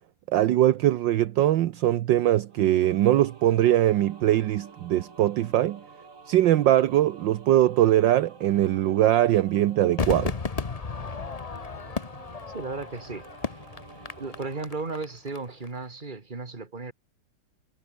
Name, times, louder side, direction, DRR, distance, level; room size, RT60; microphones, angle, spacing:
voice 1, 0.3-5.8 6.3-10.3, right 13 dB, 70° right, 1.4 m, -21 dB
sound 1, 2.5-14.7, right 4 dB, 40° right, 2.7 m, -49 dB
Crowd / Fireworks, 10.0-15.4 15.6-15.7, left 5 dB, 40° left, 0.5 m, -34 dB
voice 2, 12.5-13.3 14.2-16.9, right 3 dB, 25° right, 2.4 m, -35 dB
omnidirectional pair, 2.2 m